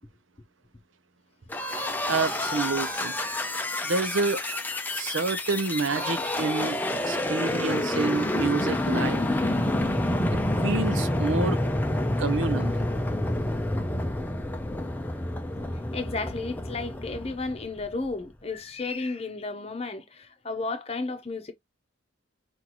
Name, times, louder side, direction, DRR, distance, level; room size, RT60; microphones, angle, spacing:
sound 1, 1.5-18.1, left 1 dB, 10° left, 0.6 m, -28 dB
voice 1, 2.1-3.1 3.8-4.4 4.9-6.8 7.1-9.2 10.3-11.6 12.2-12.7, right 4 dB, 75° right, 0.7 m, -28 dB
voice 2, 15.9-21.5, left 3 dB, 30° left, 0.9 m, -33 dB
6.0 x 2.6 x 3.0 m
head